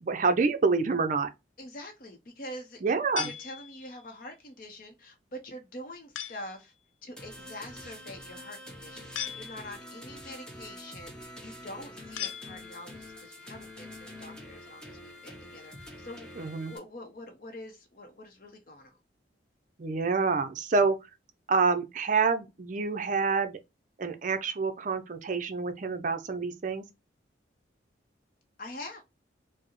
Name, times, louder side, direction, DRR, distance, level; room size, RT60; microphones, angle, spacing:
voice 1, 0.0-1.3 2.8-3.3 16.4-16.7 19.8-21.0 21.5-23.6 24.0-26.8, right 4 dB, 45° right, 0.5 m, -27 dB
voice 2, 1.6-2.8 3.2-6.7 7.0-19.0 28.6-29.0, left 1 dB, 45° left, 0.7 m, -45 dB
sound 1, 3.2-4.1 6.1-6.6 9.1-10.0 12.2-13.0, left 11 dB, 85° left, 0.4 m, -39 dB
sound 2, 7.2-16.8, left 1 dB, 5° left, 0.7 m, -46 dB
4.6 x 2.0 x 3.0 m
head